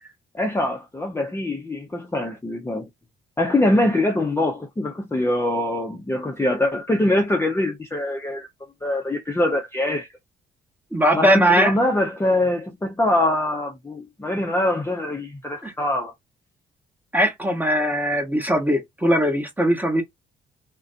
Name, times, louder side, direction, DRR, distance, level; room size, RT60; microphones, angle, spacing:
voice 1, 0.3-2.9 3.4-8.5 8.8-10.1 11.1-16.1, left 1 dB, 10° left, 0.5 m, -23 dB
voice 2, 10.9-11.7 15.6-15.7 17.1-20.0, equal, 10° right, 0.9 m, -20 dB
2.5 x 2.1 x 2.4 m
cardioid pair, 90°, 20 cm